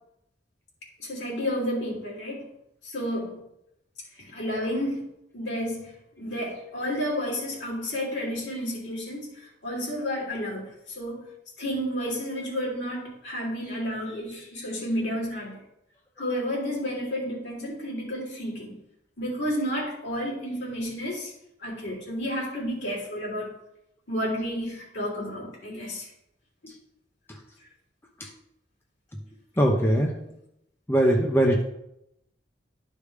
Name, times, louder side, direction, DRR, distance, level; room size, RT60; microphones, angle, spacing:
voice 1, 1.0-2.5 2.8-3.4 4.2-5.9 6.2-11.3 11.6-15.6 16.2-18.8 19.2-21.3 21.6-23.5 24.1-26.1, equal, 70° left, -3 dB, 3.0 m, -31 dB
voice 2, 29.6-30.2 30.9-31.6, equal, 15° left, 0 dB, 0.8 m, -22 dB
12.0 x 5.1 x 3.4 m, 0.81 s
head